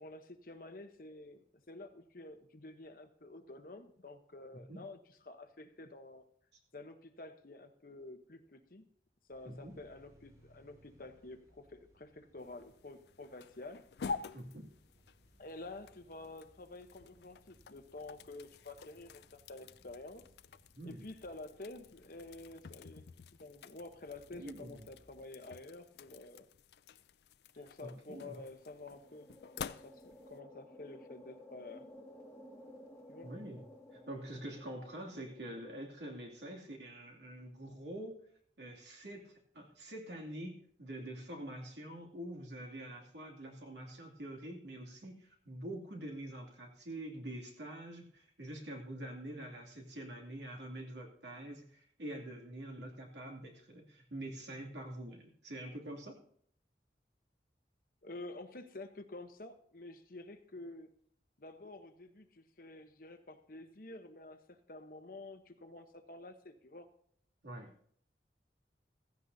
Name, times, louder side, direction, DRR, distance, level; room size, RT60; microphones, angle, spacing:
voice 1, 0.0-5.0 5.2-6.2 6.7-8.8 9.3-13.8 15.4-20.2 20.8-26.4 27.6-29.3 29.5-31.8 33.1-33.3 58.0-60.9 61.4-66.9, left 2 dB, 50° left, 7 dB, 1.0 m, -50 dB
sound 1, 9.3-25.2, equal, 20° right, 4.5 m, -67 dB
voice 2, 9.4-9.8 14.3-14.7 20.7-21.1 24.3-24.9 27.8-28.3 33.2-33.6 33.9-38.1 38.6-56.2 67.4-67.7, right 1 dB, 80° right, 0 dB, 2.7 m, -46 dB
sound 2, 12.4-30.4, left 5 dB, 70° left, 0.4 m, -50 dB
sound 3, 28.5-36.1, equal, 15° left, 1.9 m, -56 dB
15.5 x 15.0 x 2.8 m, 0.63 s
head